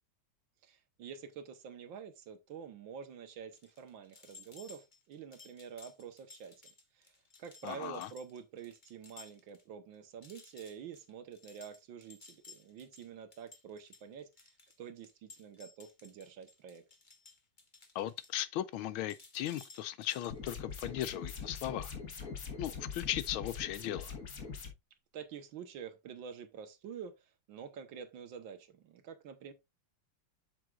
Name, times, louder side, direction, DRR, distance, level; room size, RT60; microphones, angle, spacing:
voice 1, 0.6-6.6 6.9-7.1 7.4-16.8 25.1-29.5, right 7 dB, 75° right, 1.8 m, -48 dB
sound 1, 3.5-9.6 9.9-10.0 10.2-18.8 19.1-20.9 21.3-21.5, left 4 dB, 30° left, 1.2 m, -57 dB
voice 2, 7.6-8.1 17.9-22.0 22.6-24.2, left 12 dB, 85° left, 1.5 m, -37 dB
sound 2, 20.3-24.7, left 5 dB, 45° left, 1.6 m, -43 dB
7.7 x 7.5 x 2.4 m
omnidirectional pair, 2.2 m